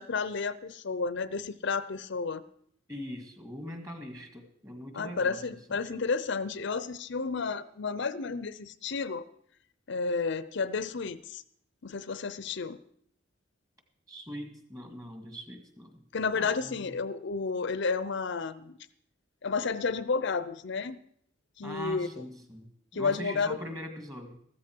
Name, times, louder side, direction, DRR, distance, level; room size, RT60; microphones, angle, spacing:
voice 1, 0.0-2.4 4.9-9.2 9.9-11.4 11.8-12.8 16.1-18.8 19.4-21.0 21.6-22.2 22.9-23.6, left 4 dB, 65° left, 15 dB, 0.7 m, -31 dB
voice 2, 2.9-5.4 5.7-5.8 14.1-16.0 16.3-17.0 21.6-24.4, equal, 20° right, 5 dB, 1.9 m, -42 dB
14.5 x 13.5 x 4.6 m, 0.67 s
head